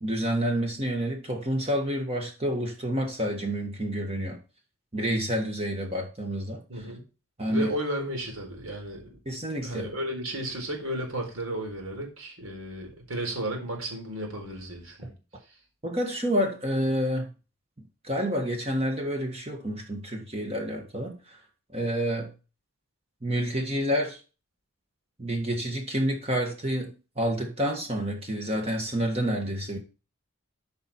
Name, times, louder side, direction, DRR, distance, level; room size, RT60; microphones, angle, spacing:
voice 1, 0.0-4.4 4.9-6.8 7.4-7.7 9.2-9.9 15.8-17.3 18.0-21.4 21.7-22.3 23.2-24.2 25.2-29.8, equal, 30° right, 2 dB, 1.6 m, -29 dB
voice 2, 6.7-7.0 7.5-9.2 9.6-15.1, right 1 dB, 75° right, 2 dB, 4.4 m, -33 dB
14.0 x 5.7 x 4.4 m, 0.32 s
head